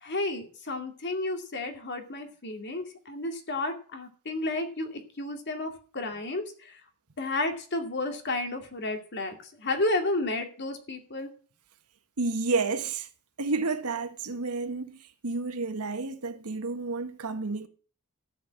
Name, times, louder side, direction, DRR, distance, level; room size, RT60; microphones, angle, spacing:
voice 1, 0.0-6.8 7.2-11.3, left 2 dB, 50° left, 2.3 m, -32 dB
voice 2, 12.2-13.1 13.4-17.7, right 3 dB, 80° right, 1.2 m, -30 dB
14.0 x 5.3 x 8.3 m
head